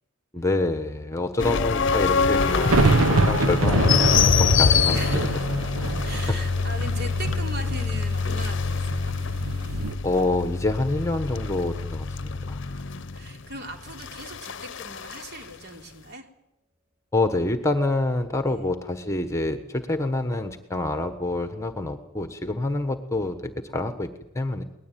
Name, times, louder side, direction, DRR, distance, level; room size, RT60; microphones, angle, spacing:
voice 1, 0.3-5.2 5.5-5.7 10.0-12.6 17.1-24.6, left 2 dB, 15° left, 8 dB, 1.3 m, -27 dB
sound 1, 1.4-15.2, left 5 dB, 55° left, 0.8 m, -25 dB
sound 2, 2.2-9.9, right 3 dB, 75° right, 1.2 m, -26 dB
sound 3, 3.6-10.7, left 2 dB, 5° right, 2.3 m, -39 dB
voice 2, 4.9-5.4 6.0-9.1 12.6-16.3, right 1 dB, 45° right, 3 dB, 3.6 m, -39 dB
23.0 x 19.5 x 9.2 m, 0.85 s
head